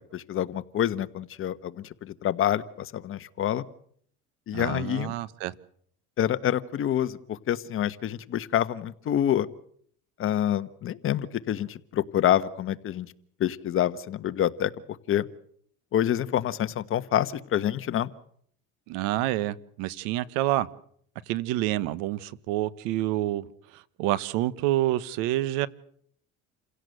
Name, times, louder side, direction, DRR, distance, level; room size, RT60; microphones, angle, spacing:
voice 1, 0.1-3.6 4.5-5.1 6.2-9.5 10.2-13.1 13.4-14.7 15.1-15.3 15.9-18.1, left 11 dB, 45° left, 12 dB, 1.3 m, -27 dB
voice 2, 4.5-5.5 18.9-20.7 21.3-23.5 23.7-25.7, right 15 dB, 80° right, 18 dB, 1.2 m, -28 dB
28.5 x 16.5 x 8.0 m, 0.65 s
cardioid pair, 115°, 30 cm